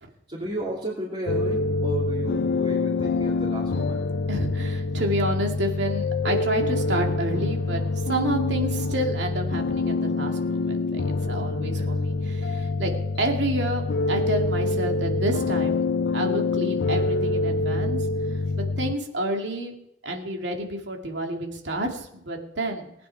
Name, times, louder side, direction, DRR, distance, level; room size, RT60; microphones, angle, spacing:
voice 1, 0.3-4.0 11.7-11.9, right 1 dB, 40° right, -5 dB, 2.8 m, -33 dB
sound 1, 1.3-18.9, left 3 dB, 65° left, 0.4 m, -26 dB
voice 2, 4.3-12.9 13.2-13.8 14.1-15.8 16.1-19.8 20.0-22.9, right 1 dB, 85° right, 2 dB, 2.4 m, -29 dB
19.5 x 9.4 x 4.7 m, 0.80 s
head